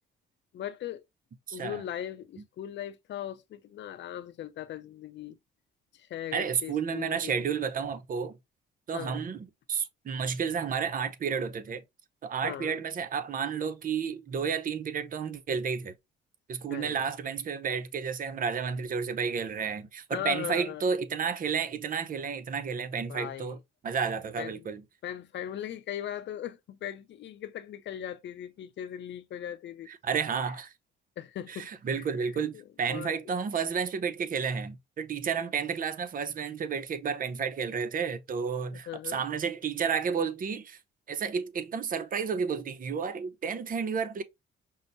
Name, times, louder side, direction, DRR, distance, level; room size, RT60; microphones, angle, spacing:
voice 1, 0.5-1.0 1.5-5.4 5.9-7.3 8.9-9.2 12.4-12.8 16.7-17.0 20.1-20.8 23.1-23.6 24.4-24.7 25.0-29.9 31.2-33.3 38.7-39.2, left 11 dB, 65° left, 0.6 m, -39 dB
voice 2, 1.5-1.8 6.3-8.4 8.9-11.8 12.2-15.9 16.5-23.6 23.8-24.8 29.9-30.7 31.5-40.8 41.1-44.2, right 6 dB, 45° right, 0.6 m, -31 dB
5.5 x 2.1 x 2.5 m
cardioid pair, 90°, 20 cm